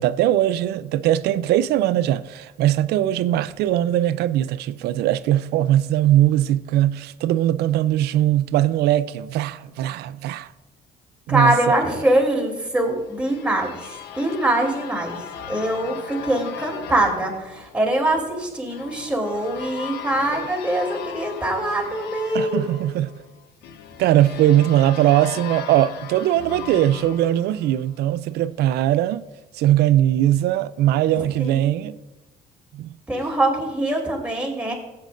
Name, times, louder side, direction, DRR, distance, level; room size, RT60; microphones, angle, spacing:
voice 1, 0.0-10.5 11.3-11.8 22.3-23.1 24.0-29.3 29.5-32.0 32.7-32.9, right 12 dB, 75° right, 0.4 m, -20 dB
voice 2, 11.3-22.6 31.1-31.8 33.1-34.7, right 1 dB, 5° right, 3.0 m, -23 dB
sound 1, 12.6-28.3, left 9 dB, 80° left, 0.9 m, -38 dB
15.5 x 8.6 x 2.6 m
cardioid pair, 110°, 17 cm